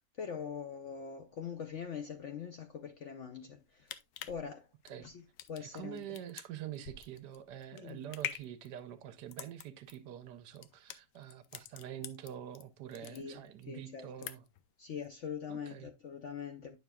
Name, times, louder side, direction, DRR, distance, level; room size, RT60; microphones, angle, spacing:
voice 1, 0.0-4.0 4.3-4.7 5.0-5.2 5.5-6.0 7.7-8.1 13.1-14.3 14.8-16.8, left 7 dB, 65° left, 0.8 m, -43 dB
sound 1, 3.6-12.6 12.9-13.7 14.0-14.7 15.0-15.1, left 11 dB, 80° left, 1.3 m, -45 dB
voice 2, 5.6-14.4 15.5-15.9, right 10 dB, 75° right, 1.3 m, -46 dB
9.1 x 6.3 x 2.2 m
omnidirectional pair, 1.9 m